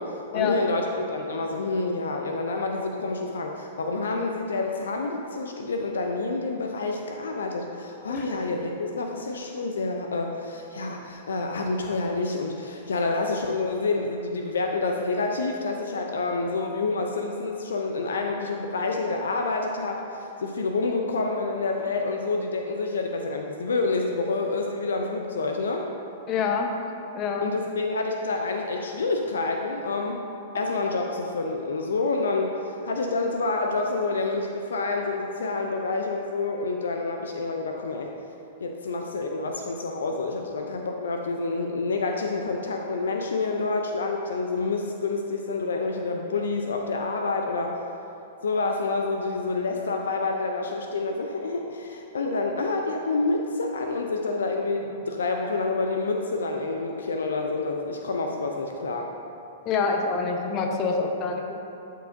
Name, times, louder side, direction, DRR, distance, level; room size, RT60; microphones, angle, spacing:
voice 1, 0.0-25.9 27.4-30.2 30.5-38.1 38.6-47.8 48.4-59.1, left 3 dB, 75° left, 3 dB, 0.5 m, -28 dB
voice 2, 26.3-26.7 27.1-27.5 59.6-61.6, left 5 dB, 35° left, 2 dB, 0.9 m, -26 dB
12.5 x 4.5 x 2.6 m, 2.8 s
figure-of-eight pair, 110°, 0 cm